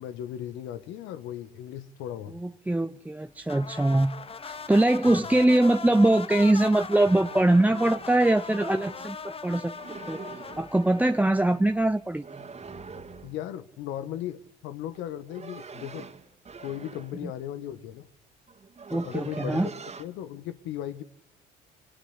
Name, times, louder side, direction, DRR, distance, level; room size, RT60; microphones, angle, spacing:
voice 1, 0.0-2.4 5.1-5.3 13.2-16.1 16.6-18.1 18.9-19.7 20.0-21.0, left 11 dB, 75° left, 1.7 m, -37 dB
voice 2, 2.3-4.1 4.4-9.7 10.1-10.2 10.6-12.3 17.2-17.3 18.9-19.7, right 1 dB, 10° right, 0.9 m, -23 dB
sound 1, 3.5-11.9, left 5 dB, 30° left, 1.1 m, -40 dB
sound 2, 7.1-9.1 9.7-10.8 12.2-13.4 14.9-17.2 18.1-18.2 18.5-20.1, right 5 dB, 35° right, 2.6 m, -44 dB
24.0 x 19.0 x 10.0 m
hypercardioid pair, 65°, 20 cm